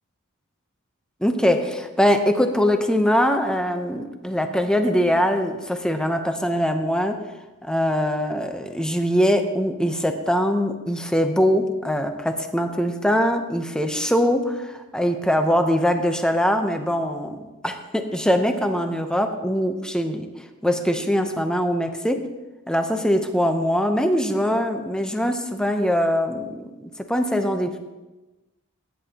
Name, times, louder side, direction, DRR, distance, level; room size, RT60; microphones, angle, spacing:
voice 1, 1.2-7.2 7.6-22.2 22.7-27.8, equal, 5° left, 6 dB, 0.8 m, -22 dB
19.0 x 10.0 x 2.9 m, 1.1 s
head